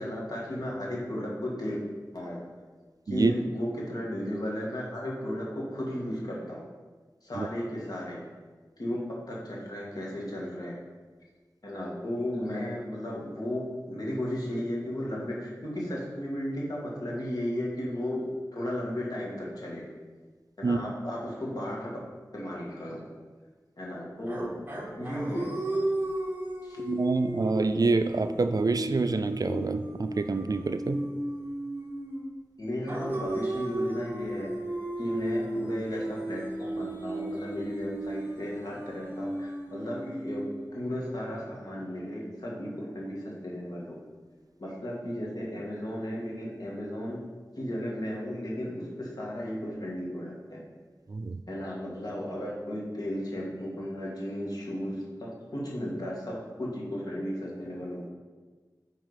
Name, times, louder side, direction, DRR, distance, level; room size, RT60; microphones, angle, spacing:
voice 1, 0.0-1.8 2.1-2.4 3.1-6.6 7.2-8.2 8.8-9.0 9.3-10.8 11.6-18.2 18.5-19.8 20.6-21.9 22.3-23.0 23.8-24.5 25.0-25.8 26.6-26.8 32.6-34.5 35.0-40.4 40.7-44.0 44.6-47.2 47.6-50.6 51.5-58.0, equal, 60° left, -4 dB, 2.0 m, -34 dB
sound 1, 24.3-32.3 32.9-41.0, right 1 dB, 30° right, 1.4 m, -35 dB
voice 2, 26.8-31.0 51.1-51.4, right 3 dB, 55° right, 10 dB, 0.4 m, -27 dB
8.2 x 4.1 x 5.1 m, 1.4 s
wide cardioid pair, 75°, 7 cm